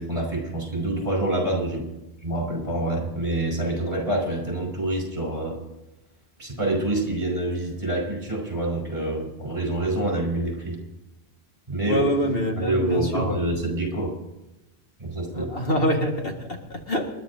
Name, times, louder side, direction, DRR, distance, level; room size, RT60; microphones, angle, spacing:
voice 1, 0.0-1.8 2.2-5.6 6.4-10.8 11.7-12.0 12.6-14.1 15.0-15.5, right 1 dB, 35° right, 0 dB, 4.9 m, -26 dB
voice 2, 11.9-13.4 15.3-17.1, equal, 60° left, 0 dB, 2.0 m, -25 dB
28.0 x 11.5 x 2.8 m, 0.97 s
omnidirectional pair, 1.1 m